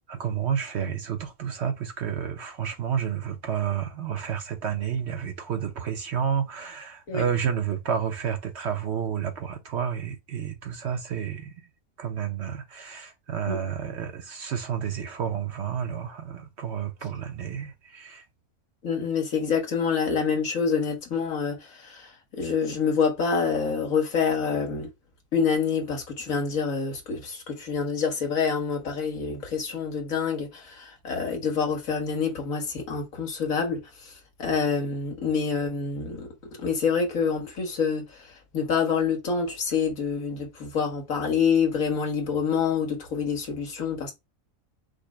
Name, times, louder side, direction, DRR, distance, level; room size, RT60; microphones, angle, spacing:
voice 1, 0.1-11.5 12.0-18.3, right 8 dB, 60° right, 0.9 m, -30 dB
voice 2, 18.8-24.9 25.3-36.3 36.6-44.1, left 6 dB, 70° left, 1.7 m, -27 dB
5.1 x 2.1 x 4.7 m
omnidirectional pair, 1.5 m